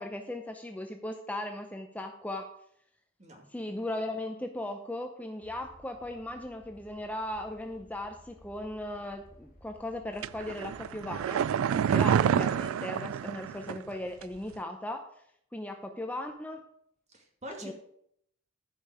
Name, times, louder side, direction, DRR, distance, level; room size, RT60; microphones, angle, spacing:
voice 1, 0.0-2.5 3.5-15.1 15.5-16.6 17.6-17.7, left 1 dB, 10° left, 5 dB, 0.6 m, -37 dB
sound 1, 5.4-12.6, equal, 45° left, 3.2 m, -57 dB
sound 2, 10.2-13.9 14.2-14.3, right 8 dB, 80° right, 0.3 m, -28 dB
voice 2, 17.1-17.7, equal, 35° right, 2 dB, 2.2 m, -44 dB
14.0 x 5.4 x 4.9 m, 0.70 s
head